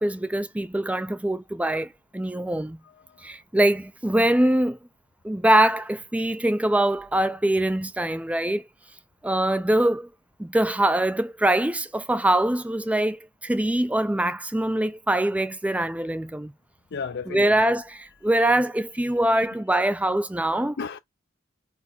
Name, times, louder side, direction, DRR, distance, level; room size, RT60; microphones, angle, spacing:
voice 1, 0.0-2.8 3.2-4.8 5.2-8.7 9.2-10.1 10.4-16.5 17.3-20.8, right 1 dB, 5° right, 0.4 m, -23 dB
voice 2, 2.8-3.3 16.9-17.5 19.3-19.4 19.7-19.8 20.8-21.0, left 5 dB, 55° left, 0.5 m, -34 dB
4.6 x 4.5 x 5.2 m
head